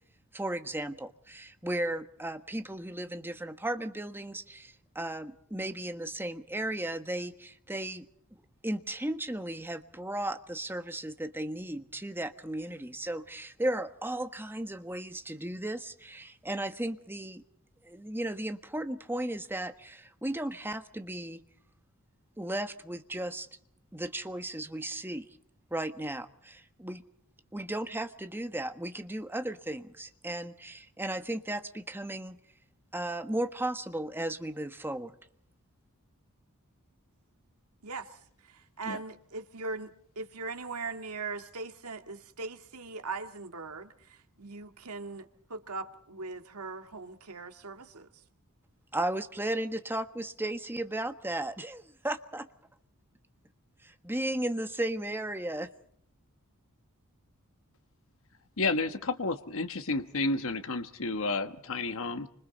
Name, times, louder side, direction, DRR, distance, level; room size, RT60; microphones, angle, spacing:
voice 1, 0.3-8.1 8.6-17.4 17.8-21.4 22.4-23.5 23.9-25.3 25.7-27.0 27.5-32.4 32.9-35.1 48.9-52.5 53.8-55.7, right 1 dB, 10° right, 1.4 m, -35 dB
voice 2, 37.8-38.2 38.4-48.1, right 3 dB, 85° right, 2.1 m, -40 dB
voice 3, 58.6-62.3, left 3 dB, 65° left, 1.4 m, -31 dB
29.0 x 26.0 x 4.1 m
head